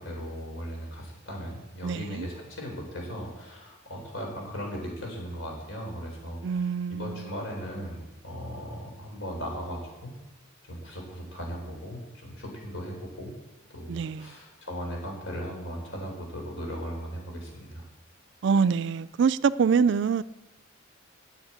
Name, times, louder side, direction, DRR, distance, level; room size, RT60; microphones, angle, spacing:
voice 1, 0.0-10.1 10.7-13.4 13.7-17.9, equal, 80° left, 4.2 m, -38 dB
voice 2, 1.8-2.3 6.4-7.3 13.9-14.3 18.4-20.2, right 6 dB, 60° right, 0.4 m, -25 dB
9.9 x 7.1 x 8.9 m
head